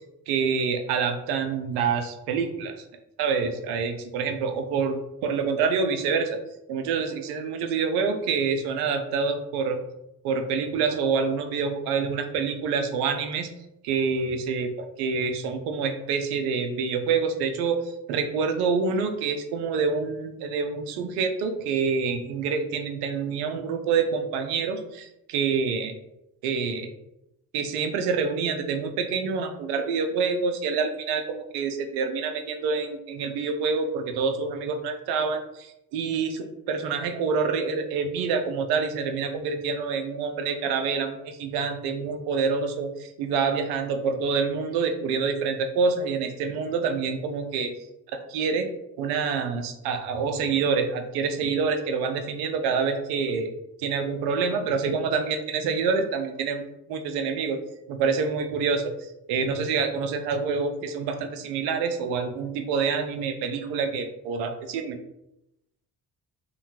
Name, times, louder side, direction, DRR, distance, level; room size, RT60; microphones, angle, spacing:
voice 1, 0.3-2.7 3.2-6.4 6.7-9.8 10.2-13.5 13.8-26.0 26.4-26.9 27.5-47.7 48.1-48.7 49.0-53.5 53.8-56.6 56.9-57.6 57.9-65.0, right 5 dB, 55° right, 6 dB, 0.5 m, -27 dB
2.7 x 2.2 x 2.8 m, 0.87 s
figure-of-eight pair, 50°, 46 cm